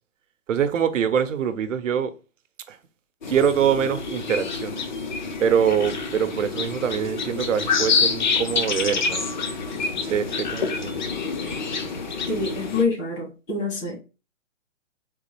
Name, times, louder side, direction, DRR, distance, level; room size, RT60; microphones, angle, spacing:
voice 1, 0.5-2.1 2.7-2.8 3.3-4.8 5.4-9.3 10.0-11.0, right 8 dB, 75° right, 0.7 m, -24 dB
sound 1, 3.2-12.8, left 4 dB, 40° left, 0.5 m, -27 dB
voice 2, 12.3-14.0, left 3 dB, 75° left, 2.2 m, -26 dB
3.7 x 2.9 x 3.0 m
hypercardioid pair, 165°, 39 cm